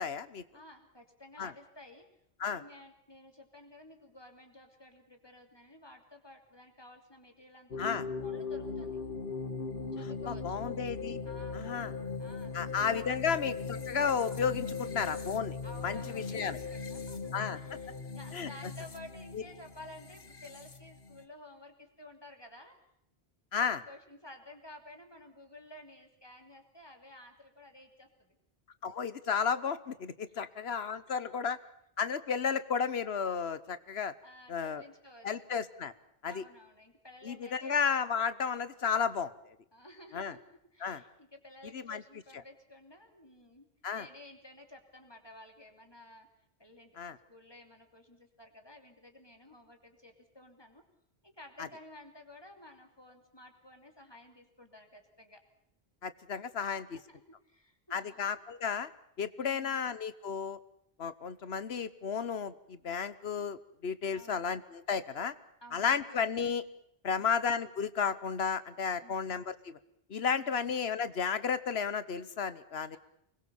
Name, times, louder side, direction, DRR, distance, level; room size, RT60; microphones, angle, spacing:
voice 1, 0.0-0.4 1.4-1.5 2.4-2.6 7.8-8.0 10.0-11.2 11.5-11.9 12.5-15.6 15.8-16.6 17.3-17.6 18.3-18.5 19.3-19.4 23.5-23.8 28.8-31.6 32.0-34.1 34.5-34.8 35.2-35.9 36.2-36.4 37.2-39.3 40.1-40.3 40.8-41.0 41.7-42.0 43.8-44.1 47.0-47.2 56.0-57.0 57.9-58.9 59.2-60.6 61.0-65.3 65.7-66.6 67.0-69.8 70.1-73.0, left 6 dB, 80° left, 15 dB, 1.3 m, -33 dB
voice 2, 0.5-2.1 2.5-9.0 9.9-10.6 11.2-11.9 12.2-12.6 12.9-13.1 15.6-22.8 23.5-28.1 30.3-30.5 31.1-31.4 34.2-35.5 36.3-37.8 39.7-43.7 43.9-46.3 46.6-47.0 47.3-50.8 51.2-55.4 56.7-57.2 57.4-58.3 59.4-59.8 64.1-64.4 65.6-66.1 67.1-67.4 69.0-69.3 70.3-70.7, left 1 dB, 25° left, 4 dB, 3.1 m, -53 dB
sound 1, 7.7-21.2, left 4 dB, 60° left, 1.7 m, -39 dB
25.0 x 21.0 x 7.1 m, 0.74 s
omnidirectional pair, 1.0 m